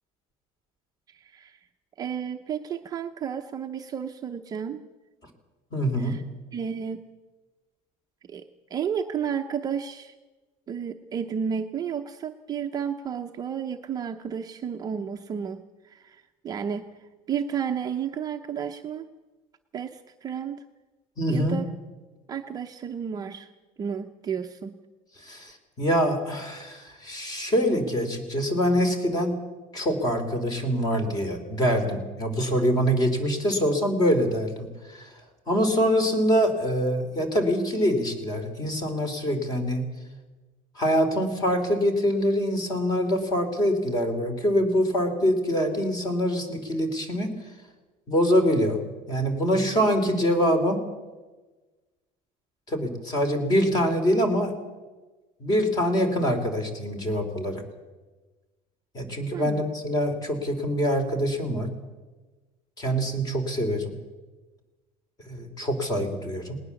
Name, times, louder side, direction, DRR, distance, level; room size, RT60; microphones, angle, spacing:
voice 1, 1.1-1.6 2.0-4.8 6.0-6.2 6.5-7.0 8.3-8.4 8.7-10.1 10.7-16.9 17.3-19.1 19.7-20.6 21.3-21.6 22.3-23.5 23.8-24.7 59.3-59.6, right 7 dB, 25° right, 4 dB, 0.7 m, -32 dB
voice 2, 5.7-6.2 21.2-21.6 25.2-29.3 29.7-35.2 35.5-39.9 40.7-47.3 48.1-48.8 49.1-50.8 52.7-54.5 55.4-57.6 58.9-61.7 62.8-63.9 65.3-66.6, equal, 25° left, 7 dB, 3.1 m, -24 dB
19.5 x 19.5 x 7.1 m, 1.2 s
cardioid pair, 170°, 16 cm